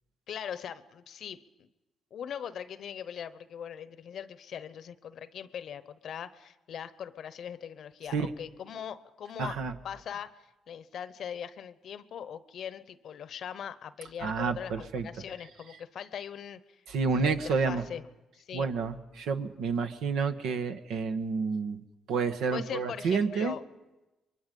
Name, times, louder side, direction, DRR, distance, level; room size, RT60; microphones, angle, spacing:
voice 1, 0.3-1.7 2.1-9.6 9.8-16.8 17.1-18.1 18.3-18.7 22.5-23.6, left 8 dB, 65° left, 15 dB, 0.9 m, -41 dB
voice 2, 9.4-9.7 14.2-15.1 16.9-17.8 18.5-21.8 22.1-23.5, right 5 dB, 75° right, 7 dB, 1.2 m, -29 dB
24.0 x 22.5 x 5.3 m, 1.1 s
supercardioid pair, 55°, 0 cm